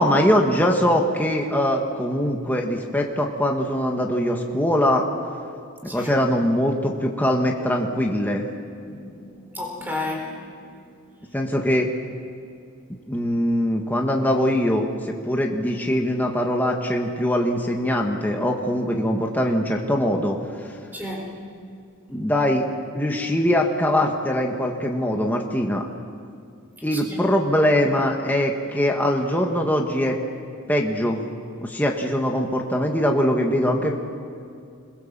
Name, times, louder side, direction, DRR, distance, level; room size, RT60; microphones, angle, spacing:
voice 1, 0.0-5.1 5.8-8.4 11.3-11.9 13.1-20.4 22.1-22.7 22.9-25.9 26.8-30.2 30.7-31.2 31.6-34.0, equal, 10° left, 1 dB, 1.5 m, -22 dB
voice 2, 8.8-10.4 20.9-21.3 26.9-27.2, left 2 dB, 10° right, -1 dB, 4.5 m, -32 dB
26.0 x 22.0 x 7.4 m, 2.4 s
head